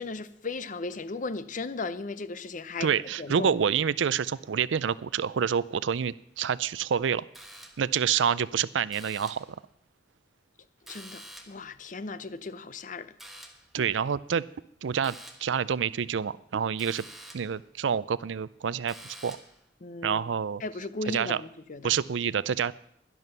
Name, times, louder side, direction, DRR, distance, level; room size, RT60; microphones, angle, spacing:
voice 1, 0.0-2.9 3.2-3.5 10.9-13.1 19.8-20.2 20.6-21.9, left 3 dB, 45° left, 0.6 m, -36 dB
voice 2, 2.8-7.3 7.8-9.5 13.7-14.4 14.8-17.0 17.3-18.9 19.2-19.4 20.0-20.6 21.1-21.4 21.8-22.7, right 7 dB, 80° right, 0.4 m, -27 dB
sound 1, 7.3-8.0 8.9-9.6 10.9-11.7 13.2-13.7 15.0-15.6 16.8-17.6 18.9-19.6, right 1 dB, ahead, 1.2 m, -47 dB
11.0 x 11.0 x 6.7 m
head